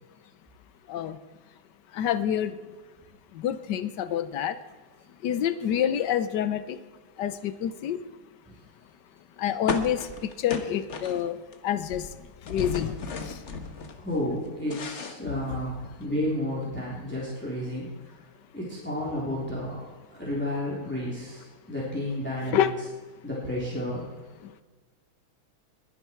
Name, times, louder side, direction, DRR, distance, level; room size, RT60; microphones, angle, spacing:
voice 1, 2.0-2.5 3.4-4.5 5.2-6.8 7.2-8.0 9.4-11.4 11.6-12.0 12.5-13.0 22.5-22.7, left 10 dB, 65° left, 13 dB, 1.3 m, -27 dB
sound 1, 9.7-11.6 11.8-14.0 14.4-15.9, left 4 dB, 40° left, 1.2 m, -35 dB
voice 2, 13.9-18.0 18.5-19.8 20.2-22.7 23.2-24.0, left 1 dB, 5° left, -6 dB, 3.4 m, -31 dB
21.0 x 10.5 x 4.6 m, 1.3 s
omnidirectional pair, 2.3 m